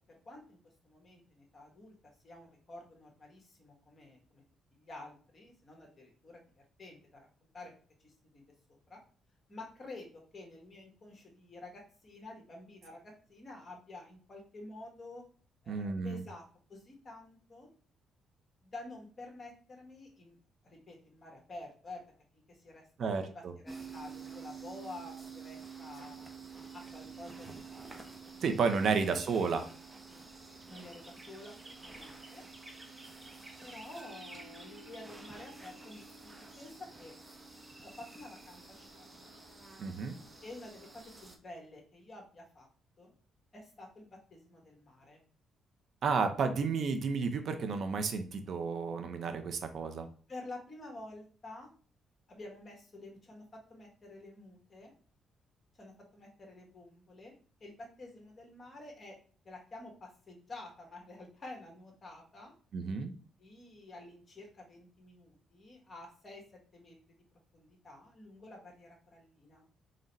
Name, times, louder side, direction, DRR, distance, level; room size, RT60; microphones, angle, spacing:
voice 1, 0.1-0.6 0.8-1.9 2.2-4.4 4.7-6.4 6.8-7.3 7.5-7.7 8.0-8.4 8.9-9.0 9.5-15.2 15.6-16.4 16.7-17.7 18.6-20.4 20.6-22.0 22.3-26.3 26.7-28.1 28.8-29.5 30.7-32.4 33.2-37.1 37.8-39.3 40.4-42.7 43.0-43.1 43.5-45.2 50.3-51.7 52.3-54.9 55.8-57.3 57.6-59.2 59.4-62.5 63.4-66.4 66.7-67.2 67.5-69.6, left 2 dB, 35° left, 0 dB, 1.4 m, -50 dB
voice 2, 15.7-16.2 23.0-23.5 28.4-29.6 39.8-40.2 46.0-50.1 62.7-63.1, right 5 dB, 60° right, 7 dB, 0.5 m, -32 dB
sound 1, 23.7-41.4, right 4 dB, 15° right, 0.7 m, -49 dB
3.8 x 2.1 x 4.0 m, 0.42 s
cardioid pair, 90°, 0 cm